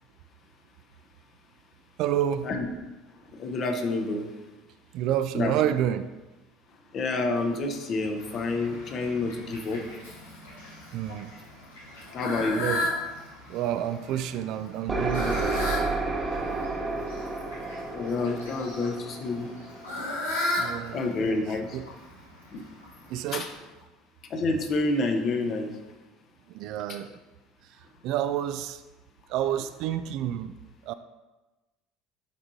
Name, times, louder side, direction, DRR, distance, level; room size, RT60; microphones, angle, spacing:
voice 1, 2.0-2.5 4.9-6.1 10.9-11.3 12.6-12.9 13.5-16.0 20.6-21.1 21.5-21.9 23.1-23.5 26.5-27.1 28.0-28.8 29.3-30.6 30.8-30.9, right 11 dB, 60° right, 12 dB, 0.3 m, -29 dB
voice 2, 3.3-4.2 5.3-5.5 6.9-9.8 12.1-12.6 17.9-19.5 20.0-20.1 20.9-21.8 22.5-22.6 23.3-23.5 24.3-25.7 26.9-27.0, left 3 dB, 45° left, 4 dB, 0.9 m, -28 dB
Fowl, 8.2-23.5, left 2 dB, 85° left, 1.4 m, -36 dB
sound 1, 14.9-20.5, right 3 dB, 25° right, 0.9 m, -31 dB
10.5 x 3.7 x 2.7 m, 1.1 s
hypercardioid pair, 70°, 0 cm